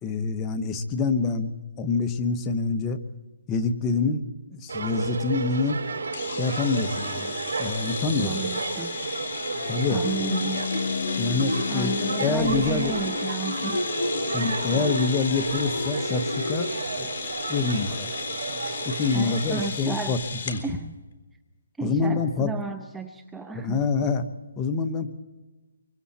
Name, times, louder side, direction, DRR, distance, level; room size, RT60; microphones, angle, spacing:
voice 1, 0.0-1.5 1.8-3.0 3.5-4.2 4.5-5.8 6.3-7.3 7.6-8.3 9.7-10.0 11.2-11.9 12.2-12.9 14.3-16.7 17.0-17.1 17.5-18.1 18.8-20.2 20.5-20.6 21.8-22.5 23.5-24.2 24.6-25.1, left 4 dB, 15° left, 7 dB, 1.1 m, -26 dB
sound 1, 4.7-19.7, right 4 dB, 70° right, 6.2 m, -33 dB
sound 2, 6.1-20.6, left 5 dB, 45° left, 3.3 m, -35 dB
voice 2, 8.2-9.0 9.9-10.6 11.7-13.8 19.1-20.2 20.6-21.0 21.8-23.8, right 4 dB, 5° right, 7 dB, 0.7 m, -33 dB
sound 3, 9.5-16.7, left 3 dB, 75° left, 7.2 m, -31 dB
25.5 x 24.0 x 4.3 m, 1.2 s
hypercardioid pair, 160°, 0 cm